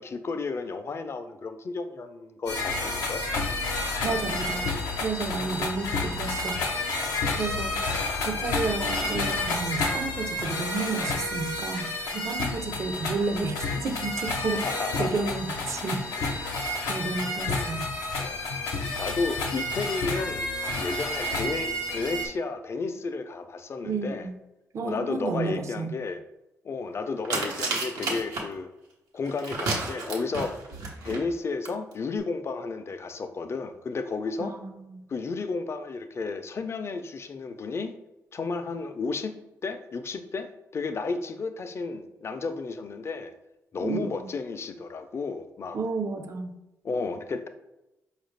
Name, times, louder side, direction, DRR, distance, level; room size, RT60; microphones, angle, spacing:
voice 1, 0.0-3.2 14.5-15.1 18.2-18.4 19.0-20.5 20.8-24.3 24.8-26.2 26.6-28.7 29.1-30.6 31.0-34.5 35.1-37.9 38.3-39.3 39.6-43.3 43.7-45.8 46.8-47.5, left 4 dB, 45° left, 8 dB, 0.5 m, -32 dB
sound 1, 2.5-22.3, left 2 dB, 90° left, 0.6 m, -30 dB
voice 2, 4.0-6.6 7.3-16.6 16.9-17.9 23.8-24.4 24.7-25.9 34.4-35.0 43.8-44.3 45.7-46.5, right 4 dB, 55° right, 5 dB, 0.6 m, -32 dB
sound 2, 27.2-28.4 29.3-31.2 31.7-31.8 31.9-32.0, right 3 dB, 85° right, 0.8 m, -31 dB
4.6 x 2.4 x 3.2 m, 0.94 s
cardioid pair, 65°, 6 cm